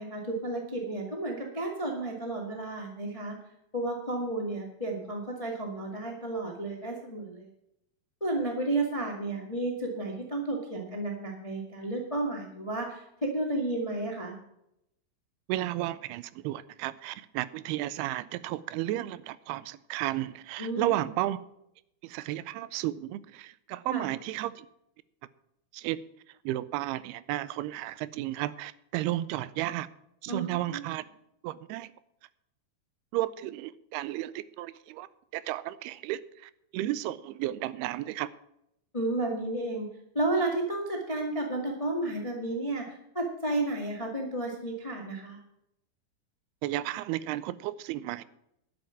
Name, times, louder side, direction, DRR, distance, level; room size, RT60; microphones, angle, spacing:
voice 1, 0.0-3.3 3.7-7.5 8.2-14.4 20.6-21.1 23.9-24.1 30.3-30.8 38.9-39.9 40.1-45.4, right 2 dB, 30° left, 0 dB, 0.6 m, -32 dB
voice 2, 15.5-21.4 22.0-24.7 25.7-26.0 26.5-29.9 30.2-31.0 31.4-31.9 33.1-35.1 35.3-38.3 46.6-48.2, right 15 dB, 90° right, 17 dB, 2.6 m, -33 dB
11.5 x 7.9 x 7.2 m, 0.80 s
omnidirectional pair, 4.5 m